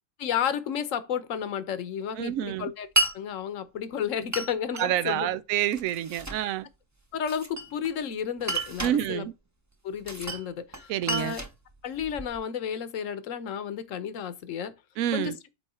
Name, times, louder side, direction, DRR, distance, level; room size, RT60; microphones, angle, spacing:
voice 1, 0.2-2.9 3.1-5.3 7.1-9.2 9.8-11.4 11.8-14.7 15.1-15.3, left 8 dB, 60° left, 1.2 m, -32 dB
voice 2, 2.2-2.7 4.8-6.7 8.8-9.3 10.9-11.4 15.0-15.4, right 11 dB, 70° right, 1.0 m, -28 dB
Glass, 3.0-3.2 4.3-4.9 5.7-6.4 7.3-8.0 8.4-9.0 10.0-10.5 10.7-12.4, right 1 dB, 15° right, 0.7 m, -31 dB
8.5 x 3.2 x 4.3 m
omnidirectional pair, 1.6 m